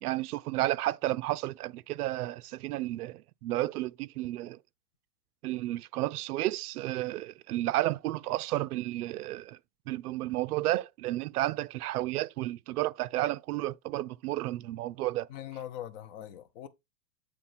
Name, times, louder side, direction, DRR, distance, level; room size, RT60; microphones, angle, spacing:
voice 1, 0.0-4.6 5.4-9.6 9.9-15.3, right 16 dB, 65° right, 0.6 m, -32 dB
voice 2, 15.3-16.7, left 11 dB, 30° left, 0.6 m, -41 dB
7.8 x 3.9 x 4.3 m
supercardioid pair, 160°, 49 cm